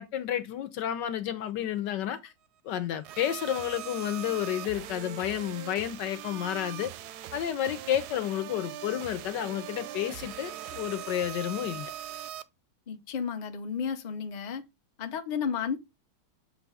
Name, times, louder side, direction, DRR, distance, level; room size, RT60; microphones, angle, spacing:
voice 1, 0.0-2.3 2.6-6.9 7.3-11.9, left 11 dB, 75° left, 1.4 m, -31 dB
sound 1, 3.0-12.4, right 11 dB, 75° right, 1.0 m, -41 dB
voice 2, 12.9-14.6 15.0-15.8, left 7 dB, 45° left, 0.6 m, -32 dB
7.6 x 2.7 x 4.7 m
omnidirectional pair, 2.0 m